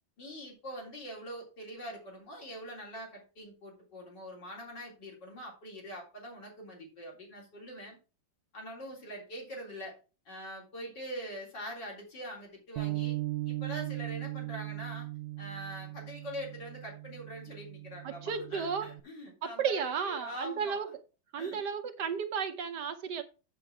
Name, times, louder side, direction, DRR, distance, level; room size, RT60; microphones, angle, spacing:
voice 1, 0.2-8.0 8.5-10.0 10.3-13.2 13.5-15.1 15.4-20.8 21.4-21.6, equal, 65° left, 4.3 m, -43 dB
Bass guitar, 12.8-19.0, right 18 dB, 85° right, 1.4 m, -38 dB
voice 2, 18.0-18.9 19.4-20.9 21.3-23.2, right 6 dB, 65° right, 1.4 m, -33 dB
7.6 x 7.5 x 4.8 m
omnidirectional pair, 2.0 m